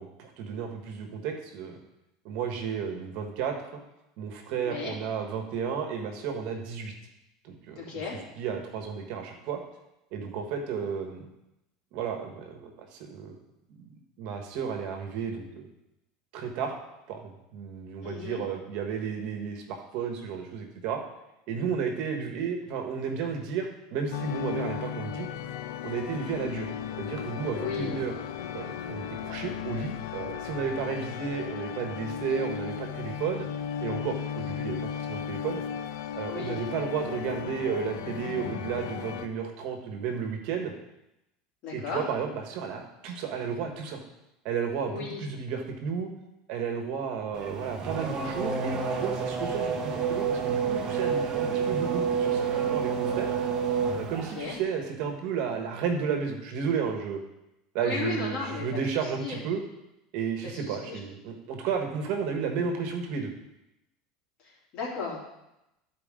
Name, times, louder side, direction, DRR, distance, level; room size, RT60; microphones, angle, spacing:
voice 1, 0.0-1.8 2.2-3.5 4.2-6.9 7.4-8.0 8.4-9.6 10.1-11.2 11.9-13.4 13.8-15.7 16.3-16.8 17.1-21.0 21.5-25.3 25.8-26.7 27.0-28.1 28.5-33.5 33.8-35.6 36.1-40.7 41.7-44.0 44.4-46.1 46.5-53.3 54.0-57.2 57.7-59.6 60.1-63.3, right 6 dB, 60° right, 4 dB, 1.4 m, -33 dB
voice 2, 4.6-4.9 7.8-8.2 18.0-18.4 27.6-28.0 36.3-36.6 41.6-42.0 44.9-45.2 54.3-54.6 57.8-59.4 60.4-61.0 64.4-65.2, left 5 dB, 45° left, -4 dB, 3.2 m, -35 dB
sound 1, 24.1-39.3, left 8 dB, 80° left, 0.5 m, -35 dB
Race car auto racing / Accelerating revving vroom, 47.3-54.6, right 6 dB, 30° right, 1.0 m, -29 dB
13.0 x 4.7 x 3.7 m, 0.90 s
supercardioid pair, 130°, 2 cm